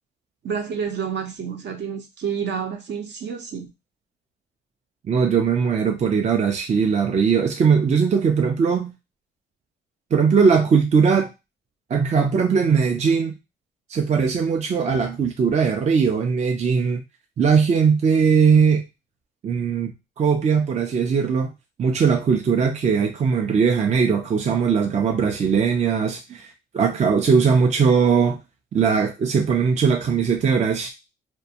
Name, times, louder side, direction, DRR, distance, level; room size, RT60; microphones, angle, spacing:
voice 1, 0.4-3.7, right 7 dB, 60° right, 4 dB, 0.7 m, -29 dB
voice 2, 5.1-8.9 10.1-11.3 11.9-13.3 13.9-17.0 17.4-18.9 19.4-21.5 21.8-28.4 28.7-30.9, right 6 dB, 35° right, 4 dB, 0.4 m, -20 dB
2.5 x 2.2 x 2.7 m, 0.24 s
cardioid pair, 90°, 20 cm